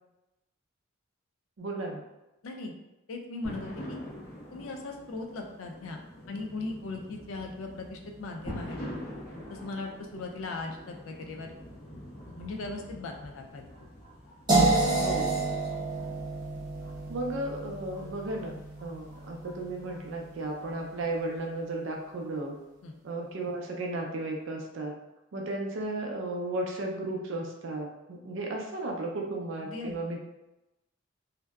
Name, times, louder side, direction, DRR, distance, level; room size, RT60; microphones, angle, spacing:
voice 1, 1.6-2.0 15.0-15.4 17.1-22.6 23.0-24.9 25.3-30.2, right 2 dB, 70° right, 0 dB, 0.4 m, -34 dB
voice 2, 3.1-4.0 4.5-6.0 6.3-8.8 9.5-11.5 12.3-13.6 22.8-23.0 29.6-30.0, left 3 dB, 85° left, 2 dB, 0.4 m, -38 dB
sound 1, 3.4-21.4, equal, 45° left, 1.1 m, -46 dB
sound 2, 14.5-20.4, right 2 dB, 20° right, 0.6 m, -29 dB
2.6 x 2.1 x 2.3 m, 0.96 s
head